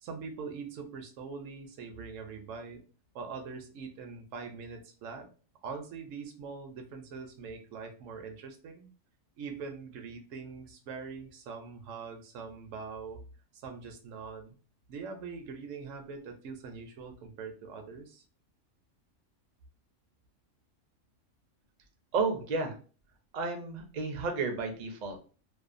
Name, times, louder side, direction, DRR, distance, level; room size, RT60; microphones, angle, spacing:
voice 1, 0.0-2.8 3.1-5.3 5.6-8.9 9.4-13.2 13.5-14.6 14.9-18.2, right 5 dB, 80° right, 5 dB, 0.9 m, -43 dB
voice 2, 22.1-22.8 23.3-25.2, right 4 dB, 55° right, 5 dB, 0.5 m, -32 dB
2.7 x 2.1 x 2.4 m, 0.38 s
omnidirectional pair, 1.3 m